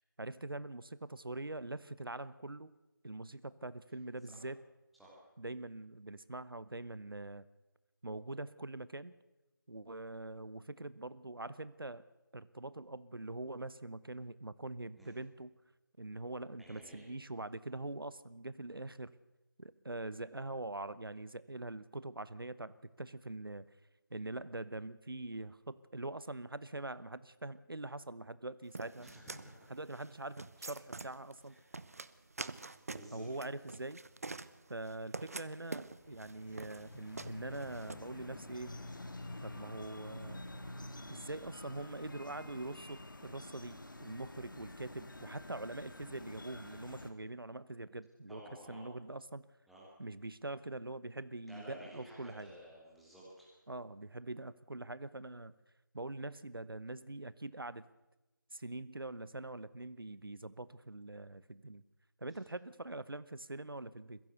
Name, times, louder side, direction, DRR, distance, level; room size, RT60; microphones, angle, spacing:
voice 1, 0.2-2.7 3.0-4.6 5.4-7.5 8.0-9.1 9.7-12.0 12.3-15.5 16.0-19.1 19.6-23.7 24.1-29.1 29.7-31.6 33.1-34.0 34.7-38.7 39.4-40.4 41.1-48.4 48.7-49.4 50.0-52.5 53.7-55.5 55.9-57.8 58.5-61.8 62.2-64.2, right 2 dB, 80° right, 17 dB, 0.9 m, -43 dB
voice 2, 16.6-17.1 17.6-17.7 29.0-29.5 31.5-31.6 32.9-33.3 48.3-48.8 49.7-49.8 51.4-53.5, equal, ahead, -7 dB, 2.7 m, -53 dB
sound 1, 28.7-37.9, right 3 dB, 45° right, 0.8 m, -46 dB
sound 2, 35.8-47.1, left 1 dB, 65° left, 2.4 m, -49 dB
22.0 x 15.5 x 8.0 m, 1.1 s
figure-of-eight pair, 165°, 12 cm